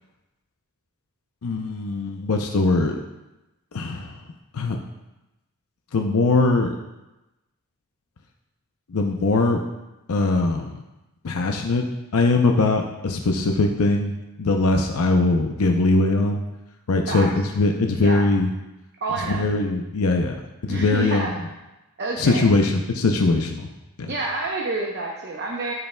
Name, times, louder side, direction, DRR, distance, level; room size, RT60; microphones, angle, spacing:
voice 1, 1.4-3.0 3.7-4.2 4.5-4.8 5.9-6.7 8.9-9.6 10.1-10.8 11.2-11.9 12.1-14.1 14.4-16.4 16.9-18.5 19.3-20.4 20.6-21.3 22.2-23.7 24.0-24.1, left 2 dB, 85° left, 3 dB, 0.6 m, -21 dB
voice 2, 19.0-19.4 20.7-21.3 22.0-22.5 24.1-25.7, right 3 dB, 50° right, -1 dB, 0.8 m, -28 dB
13.0 x 5.6 x 2.2 m, 1.0 s
head